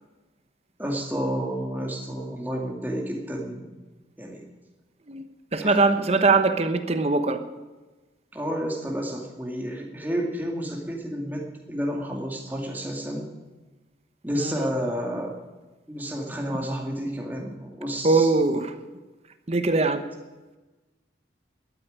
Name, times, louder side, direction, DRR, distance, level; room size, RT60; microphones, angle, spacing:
voice 1, 0.8-3.7 4.2-4.4 5.6-5.8 8.3-13.3 14.2-15.3 15.9-18.3, equal, 10° right, 0 dB, 2.2 m, -30 dB
voice 2, 5.5-7.4 14.4-14.7 18.0-18.7 19.5-20.0, right 3 dB, 35° right, 8 dB, 1.0 m, -21 dB
12.5 x 9.1 x 10.0 m, 1.2 s
head